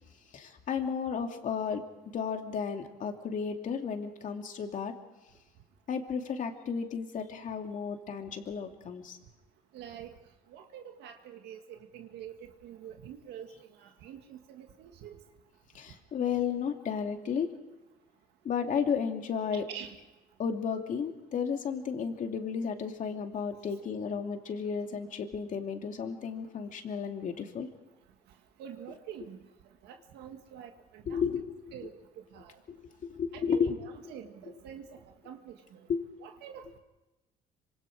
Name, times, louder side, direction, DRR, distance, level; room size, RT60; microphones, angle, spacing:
voice 1, 0.3-1.8 2.1-4.9 5.9-9.2 15.7-17.5 18.4-19.6 20.4-27.7 31.1-31.6 32.7-32.8 33.0-33.7 35.9-36.0, left 6 dB, 50° left, 4 dB, 2.6 m, -33 dB
voice 2, 9.7-10.2 10.5-15.2 19.5-20.0 28.6-29.4 29.8-31.2 31.7-32.0 32.3-32.6 33.3-35.8 36.2-36.8, right 9 dB, 85° right, 4 dB, 1.9 m, -46 dB
26.0 x 25.5 x 4.9 m, 1.0 s
cardioid pair, 110°, 17 cm